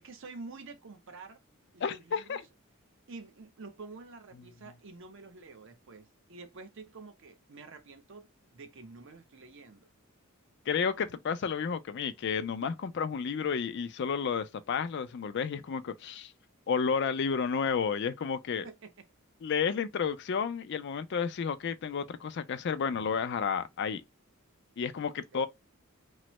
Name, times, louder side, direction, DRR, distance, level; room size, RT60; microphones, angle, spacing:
voice 1, 0.0-1.4 1.7-2.4 3.1-9.9 18.6-18.9, right 3 dB, 60° right, 0.7 m, -48 dB
voice 2, 1.8-2.4 10.7-16.3 16.7-18.7 19.4-24.0 24.8-25.5, left 6 dB, 50° left, 0.4 m, -31 dB
3.1 x 2.0 x 2.9 m
head